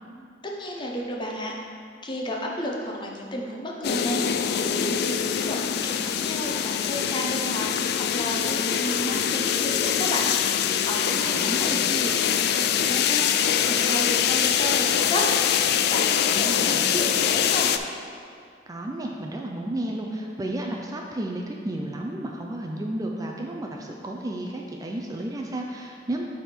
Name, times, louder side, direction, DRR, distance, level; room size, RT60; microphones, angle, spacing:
voice 1, 0.6-1.5 2.0-7.7 8.1-10.3 10.8-15.3 15.9-17.7, equal, 25° left, -1 dB, 0.8 m, -32 dB
sound 1, 3.8-17.8, left 9 dB, 65° left, 0.3 m, -24 dB
voice 2, 11.4-11.9 16.3-16.9 18.7-26.2, right 1 dB, 20° right, 0 dB, 0.4 m, -32 dB
8.9 x 3.6 x 4.3 m, 2.3 s
head